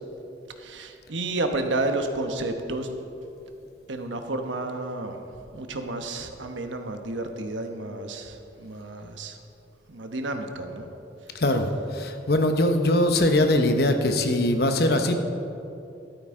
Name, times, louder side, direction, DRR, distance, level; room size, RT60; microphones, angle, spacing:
voice 1, 0.6-3.0 3.9-5.2 5.5-9.4 9.9-10.9 11.2-11.4, right 2 dB, 85° right, 5 dB, 1.1 m, -31 dB
voice 2, 11.3-11.7 11.9-15.2, left 1 dB, 55° left, 6 dB, 0.9 m, -21 dB
14.0 x 12.5 x 3.7 m, 2.8 s
head